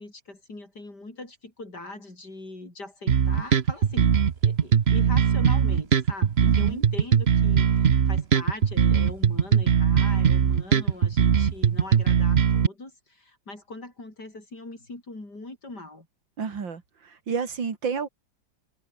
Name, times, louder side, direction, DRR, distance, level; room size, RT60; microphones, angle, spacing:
voice 1, 0.0-16.1, left 2 dB, 60° left, 7.3 m, -41 dB
sound 1, 3.1-12.7, right 7 dB, 45° right, 1.0 m, -20 dB
voice 2, 6.5-6.8 16.4-18.1, right 6 dB, 85° right, 3.2 m, -31 dB
omnidirectional pair, 2.0 m